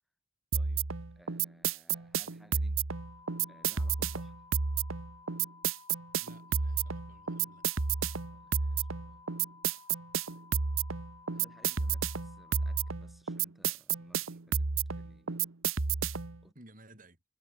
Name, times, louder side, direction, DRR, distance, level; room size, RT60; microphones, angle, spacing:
voice 1, 0.5-0.9 1.2-2.8 3.4-4.4 8.1-10.0 10.3-10.5 11.3-15.5 16.4-16.6, equal, ahead, 7.0 m, -62 dB
sound 1, 0.5-16.4, right 6 dB, 80° right, 1.2 m, -32 dB
sound 2, 2.9-12.9, left 4 dB, 20° left, 3.2 m, -56 dB
voice 2, 6.2-7.7 8.0-8.2 16.5-17.2, right 1 dB, 40° right, 7.8 m, -57 dB
head